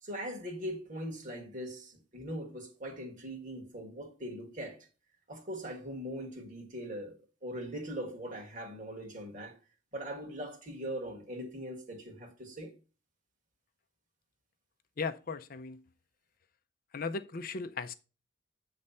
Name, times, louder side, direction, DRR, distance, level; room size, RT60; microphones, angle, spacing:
voice 1, 0.0-4.9 5.3-7.1 7.4-9.6 9.9-12.7, equal, 35° right, 1.7 m, -41 dB
voice 2, 15.0-15.8 16.9-17.9, left 4 dB, 40° left, 0.5 m, -37 dB
8.0 x 3.2 x 5.5 m
head